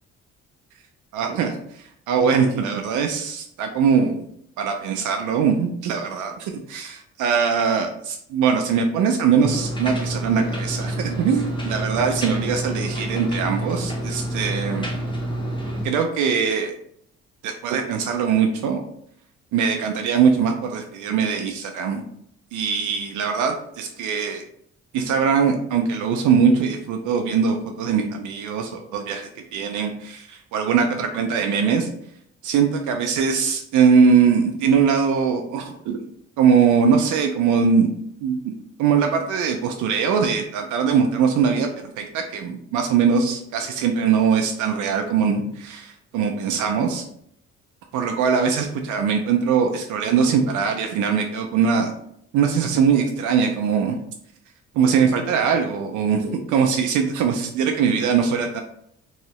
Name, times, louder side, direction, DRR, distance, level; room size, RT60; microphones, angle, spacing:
voice 1, 1.1-4.3 4.6-14.9 15.8-16.7 17.4-18.8 19.5-22.0 22.5-24.4 24.9-31.9 32.4-36.1 36.4-37.9 38.2-47.0 47.9-51.9 52.3-54.0 54.7-58.6, right 6 dB, 80° right, 3 dB, 0.5 m, -21 dB
sound 1, 9.4-15.8, right 1 dB, 15° left, 0.8 m, -28 dB
3.1 x 2.7 x 3.0 m, 0.69 s
cardioid pair, 90°, 30 cm